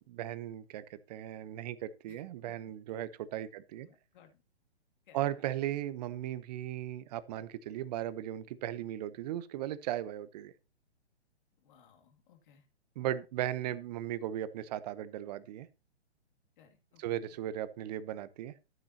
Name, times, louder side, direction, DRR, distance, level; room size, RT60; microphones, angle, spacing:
voice 1, 0.1-3.9 5.1-10.5 13.0-15.7 17.0-18.5, right 12 dB, 40° right, 0.9 m, -37 dB
voice 2, 2.1-2.5 3.8-4.4 5.1-5.2 5.5-5.6 11.6-12.7 13.0-13.2 16.6-17.2, left 9 dB, 45° left, 2.6 m, -62 dB
13.0 x 9.2 x 2.8 m
figure-of-eight pair, 125°, 33 cm